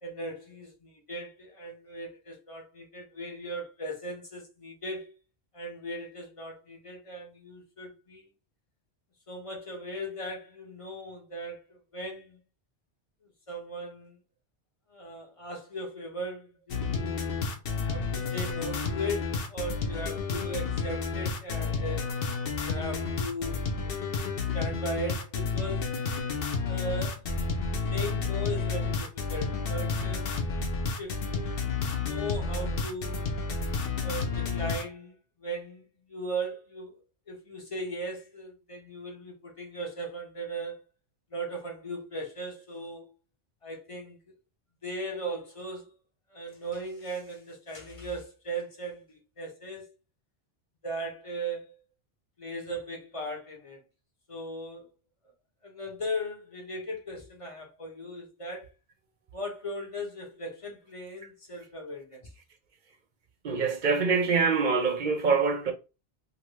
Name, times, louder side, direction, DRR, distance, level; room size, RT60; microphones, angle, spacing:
voice 1, 0.0-5.1 5.5-8.2 9.3-12.4 13.5-14.2 14.9-17.3 17.8-22.1 22.6-23.9 24.5-26.0 26.6-27.2 27.9-30.3 31.0-33.2 34.0-36.9 37.3-40.8 41.3-43.1 43.6-44.2 44.8-45.9 46.3-49.9 50.8-51.7 52.4-53.8 54.3-54.9 55.6-58.7 59.3-62.2, right 1 dB, 35° left, 0.7 m, -38 dB
sound 1, 16.7-34.8, left 4 dB, 65° left, 0.8 m, -31 dB
voice 2, 63.4-65.7, right 5 dB, 55° right, 0.6 m, -25 dB
2.6 x 2.6 x 3.1 m
omnidirectional pair, 1.1 m